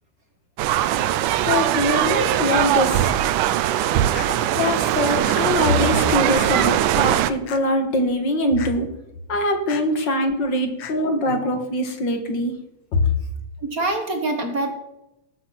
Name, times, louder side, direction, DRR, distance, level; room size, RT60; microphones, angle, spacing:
sound 1, 0.6-7.3, right 12 dB, 85° right, 2.3 m, -20 dB
voice 1, 1.4-3.1 4.6-8.9 9.3-12.6 12.9-13.1, left 1 dB, 40° left, 6 dB, 2.1 m, -23 dB
sound 2, 4.1-4.3 5.2-5.4 6.3-6.5 7.5-7.6 8.6-8.7 9.7-9.8 10.8-11.0, left 8 dB, 60° left, 1.7 m, -35 dB
voice 2, 4.2-4.6 11.3-11.4 13.6-14.7, right 2 dB, 40° right, 5 dB, 1.3 m, -26 dB
19.0 x 8.2 x 5.9 m, 0.90 s
omnidirectional pair, 3.6 m